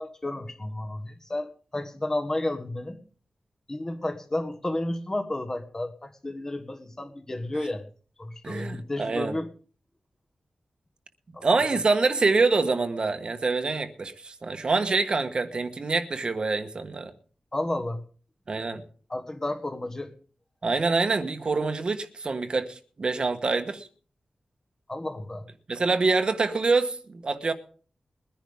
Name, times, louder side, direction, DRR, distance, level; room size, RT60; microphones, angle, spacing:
voice 1, 0.0-3.0 3.7-7.8 8.2-9.5 11.3-11.4 17.5-18.0 19.1-20.1 24.9-25.5, left 1 dB, 25° left, 1.5 m, -32 dB
voice 2, 8.4-9.3 11.4-17.1 18.5-18.8 20.6-23.9 25.7-27.5, right 3 dB, 45° right, 1.2 m, -25 dB
21.5 x 10.5 x 3.6 m
wide cardioid pair, 145°, 2 cm